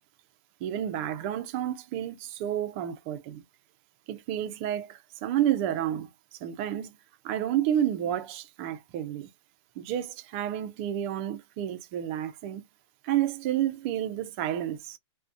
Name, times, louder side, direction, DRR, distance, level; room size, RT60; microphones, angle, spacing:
voice 1, 0.6-3.4 4.1-7.0 7.2-9.3 9.8-12.6 13.0-15.0, right 11 dB, 25° right, 0.4 m, -30 dB
2.5 x 2.1 x 2.4 m
hypercardioid pair, 160°, 16 cm